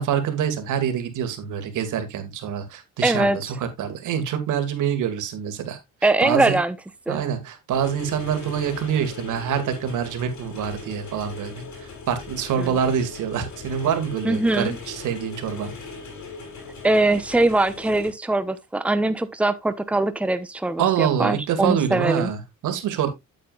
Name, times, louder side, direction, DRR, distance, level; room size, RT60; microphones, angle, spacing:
voice 1, 0.0-6.5 7.1-15.7 20.8-23.1, right 8 dB, 80° right, 2.2 m, -26 dB
voice 2, 3.0-3.4 6.0-6.7 7.1-7.2 12.6-12.7 14.2-14.8 16.8-22.3, right 2 dB, 5° right, 0.9 m, -22 dB
sound 1, 7.7-18.1, left 4 dB, 65° left, 5.6 m, -39 dB
9.3 x 8.6 x 2.4 m
cardioid pair, 90°, 30 cm